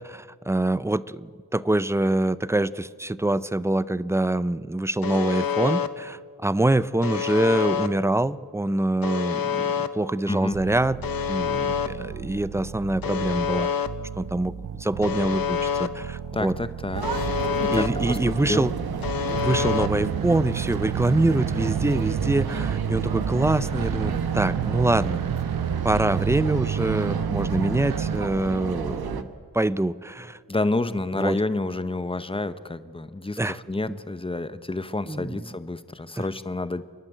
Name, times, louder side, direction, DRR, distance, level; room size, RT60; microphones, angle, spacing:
voice 1, 0.0-11.0 11.3-13.7 14.2-16.5 17.7-18.7 19.3-25.2 25.8-29.3 29.5-30.4 31.2-31.4 33.4-33.6 33.9-34.0 35.1-35.4 36.2-36.3, right 1 dB, 10° right, 17 dB, 0.4 m, -25 dB
Alarm, 5.0-5.9 7.0-7.9 9.0-9.9 11.0-11.9 13.0-13.9 15.0-15.9 17.0-17.9 19.0-19.9, left 8 dB, 70° left, 0.9 m, -27 dB
voice 2, 10.3-10.6 16.3-17.0 17.6-18.7 30.5-36.8, left 2 dB, 15° left, 13 dB, 0.8 m, -29 dB
sound 1, 10.5-28.2, right 9 dB, 65° right, 0.7 m, -31 dB
sound 2, 16.9-29.2, right 6 dB, 85° right, 1.1 m, -31 dB
29.0 x 11.5 x 9.1 m, 2.1 s
wide cardioid pair, 100°, 36 cm